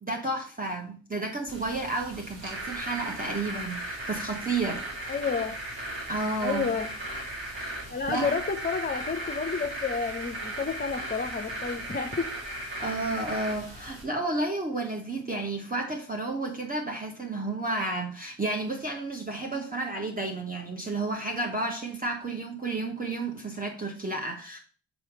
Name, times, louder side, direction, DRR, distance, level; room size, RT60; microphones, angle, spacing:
voice 1, 0.0-5.2 6.1-6.7 8.1-8.4 12.8-24.6, right 2 dB, 20° right, 1 dB, 1.2 m, -31 dB
sound 1, 1.5-14.0, right 1 dB, 65° right, 3.1 m, -37 dB
voice 2, 5.1-5.6 6.4-6.9 7.9-12.3, left 5 dB, 20° left, 4 dB, 0.8 m, -30 dB
6.6 x 3.4 x 4.7 m, 0.41 s
supercardioid pair, 45°, 48 cm